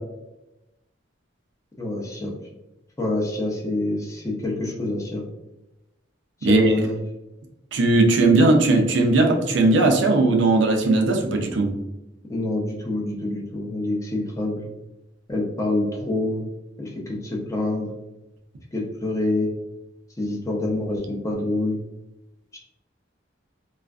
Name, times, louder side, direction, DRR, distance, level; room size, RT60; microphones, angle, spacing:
voice 1, 1.8-2.3 3.0-5.2 6.4-7.0 12.3-14.6 15.3-16.4 16.8-17.9 18.7-19.5 20.2-21.8 22.5-22.6, left 2 dB, 15° left, -2 dB, 0.5 m, -26 dB
voice 2, 7.7-11.7, right 2 dB, 60° right, 2 dB, 0.4 m, -18 dB
2.4 x 2.3 x 2.2 m, 0.94 s
head